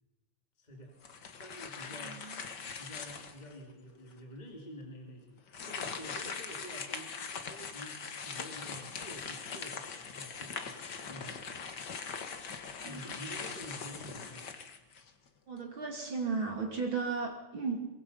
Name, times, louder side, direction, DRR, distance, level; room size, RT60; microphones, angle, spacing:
voice 1, 0.6-1.0 1.4-2.2 2.8-7.2 7.5-11.7 12.8-14.6, equal, 15° left, 1 dB, 2.6 m, -49 dB
sound 1, 1.0-3.6 4.1-4.2 5.5-15.3, left 5 dB, 40° left, 1.7 m, -41 dB
voice 2, 2.0-2.4 12.8-13.0 15.5-17.8, right 4 dB, 40° right, 3 dB, 3.0 m, -35 dB
24.0 x 22.5 x 5.6 m, 1.0 s
omnidirectional pair, 3.6 m